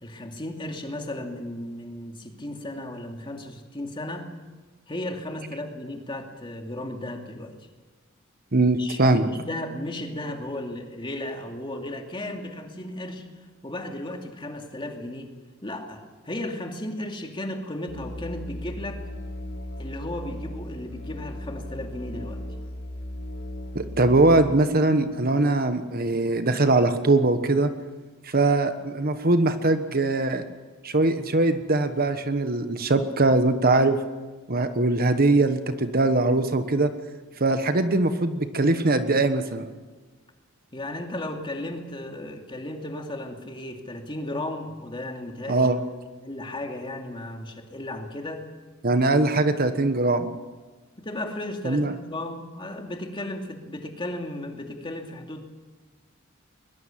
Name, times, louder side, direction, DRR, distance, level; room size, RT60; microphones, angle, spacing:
voice 1, 0.0-4.3 4.9-7.5 8.8-13.2 13.6-15.3 15.6-19.0 19.8-22.4 40.7-45.7 46.2-48.5 51.0-55.4, left 1 dB, 25° left, 3 dB, 2.7 m, -35 dB
voice 2, 8.5-9.2 23.7-27.7 28.2-30.4 30.8-34.0 34.5-36.9 37.4-39.7 45.5-45.8 48.8-50.3 51.6-51.9, right 2 dB, 45° right, 9 dB, 1.3 m, -21 dB
Musical instrument, 17.9-24.6, left 1 dB, 65° left, 4.1 m, -36 dB
21.5 x 21.5 x 7.5 m, 1.3 s
head